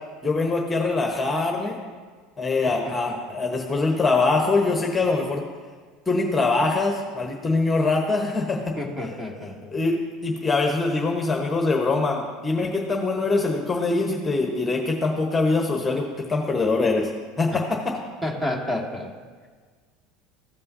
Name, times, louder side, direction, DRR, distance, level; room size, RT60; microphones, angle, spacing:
voice 1, 0.2-1.8 2.4-5.4 6.1-8.7 9.7-17.1 17.4-17.9, left 3 dB, 15° left, 1 dB, 1.1 m, -23 dB
voice 2, 8.8-9.7 18.2-19.1, left 1 dB, 15° right, 1 dB, 1.7 m, -30 dB
15.5 x 5.4 x 2.7 m, 1.5 s
supercardioid pair, 100°, 0 cm